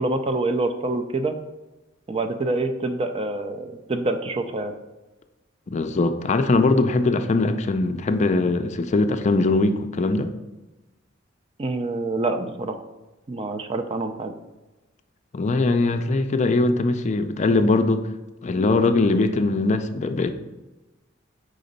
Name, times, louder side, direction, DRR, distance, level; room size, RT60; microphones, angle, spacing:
voice 1, 0.0-1.3 2.1-4.7 11.6-12.8 13.3-14.3, right 2 dB, 30° right, 8 dB, 0.4 m, -26 dB
voice 2, 5.7-10.3 15.3-18.0 18.4-20.3, left 3 dB, 35° left, 8 dB, 0.4 m, -21 dB
5.0 x 3.8 x 5.3 m, 1.1 s
head